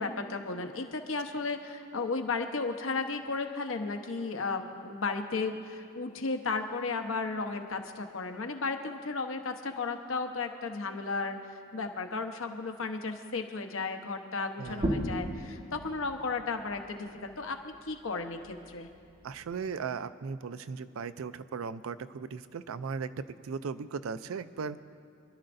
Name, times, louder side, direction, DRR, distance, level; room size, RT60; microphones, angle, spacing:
voice 1, 0.0-11.4 11.7-18.9, left 4 dB, 70° left, 5 dB, 0.9 m, -34 dB
sound 1, 14.6-19.9, equal, 30° right, 1.5 m, -38 dB
voice 2, 14.6-15.2 19.2-23.1 23.4-24.8, right 5 dB, 80° right, 14 dB, 0.4 m, -37 dB
27.5 x 12.0 x 2.6 m, 2.6 s
head